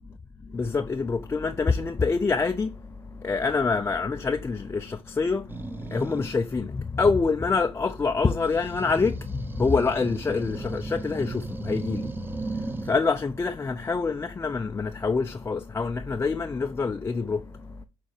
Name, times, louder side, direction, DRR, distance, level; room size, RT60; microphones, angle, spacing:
voice 1, 0.5-2.7 3.2-5.4 5.9-9.1 9.4-12.1 12.9-17.4, left 4 dB, 15° left, 0.5 m, -26 dB
sound 1, 5.5-6.3 8.4-13.0, right 3 dB, 15° right, 0.7 m, -35 dB
6.0 x 3.8 x 4.9 m
hypercardioid pair, 70°, 15 cm